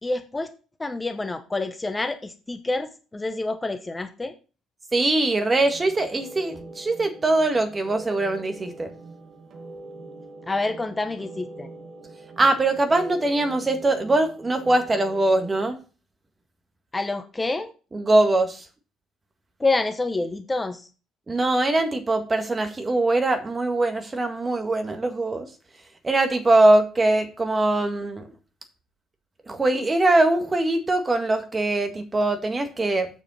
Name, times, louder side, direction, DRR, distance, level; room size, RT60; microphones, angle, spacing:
voice 1, 0.0-0.5 0.8-4.3 10.5-11.7 16.9-17.7 19.6-20.9, left 2 dB, 20° left, 1.1 m, -27 dB
voice 2, 4.9-8.9 12.4-15.8 17.9-18.6 21.3-25.5 26.0-28.2 29.5-33.1, right 2 dB, 25° right, 1.7 m, -22 dB
sound 1, 5.4-15.7, right 2 dB, 50° right, 2.1 m, -43 dB
7.8 x 7.0 x 4.2 m
hypercardioid pair, 55°, 0 cm